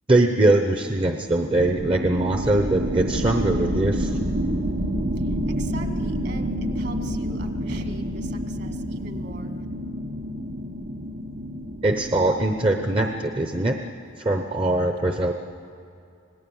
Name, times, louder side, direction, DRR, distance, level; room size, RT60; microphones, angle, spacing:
voice 1, 0.1-4.2 11.8-13.8 14.2-15.3, right 2 dB, 25° right, 4 dB, 0.9 m, -22 dB
sound 1, 1.6-13.8, equal, 80° right, 1.7 m, -29 dB
voice 2, 5.2-6.5 6.8-9.5, right 2 dB, 50° right, 5 dB, 2.0 m, -41 dB
26.5 x 19.0 x 7.2 m, 2.5 s
head